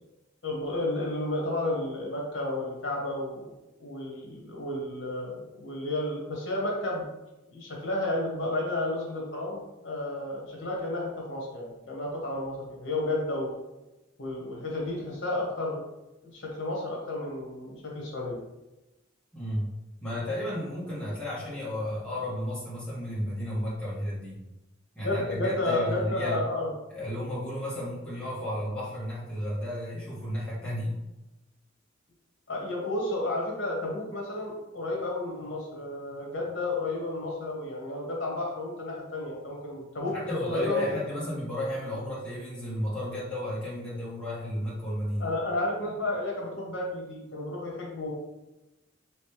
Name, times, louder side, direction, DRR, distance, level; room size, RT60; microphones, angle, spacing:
voice 1, 0.4-3.5 3.8-7.0 7.5-13.5 14.2-15.8 16.2-18.4 25.0-26.7 32.5-40.9 45.2-48.1, left 2 dB, 65° left, -2 dB, 1.1 m, -32 dB
voice 2, 19.3-19.7 20.0-24.4 24.9-26.4 26.9-31.0 40.1-45.3, left 1 dB, 5° left, -9 dB, 1.3 m, -33 dB
3.3 x 3.1 x 3.2 m, 1.0 s
head